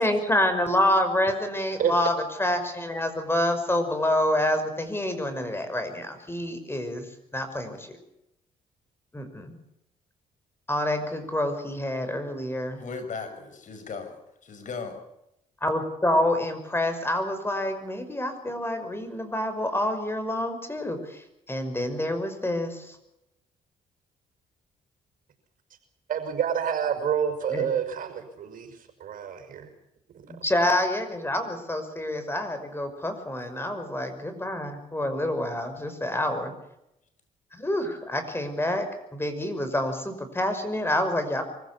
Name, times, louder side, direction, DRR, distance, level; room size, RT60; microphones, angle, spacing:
voice 1, 0.0-2.1 2.4-7.1 7.3-7.9 9.1-9.5 10.7-12.8 15.6-23.0 27.5-27.6 30.3-36.5 37.5-38.9 39.1-41.4, left 1 dB, 15° left, 8 dB, 5.7 m, -27 dB
voice 2, 12.8-15.0 33.4-33.7, left 4 dB, 60° left, 7 dB, 6.0 m, -38 dB
voice 3, 26.1-29.7 30.1-30.2, right 8 dB, 65° right, 6 dB, 5.8 m, -28 dB
24.0 x 15.5 x 8.6 m, 0.83 s
supercardioid pair, 65°, 15 cm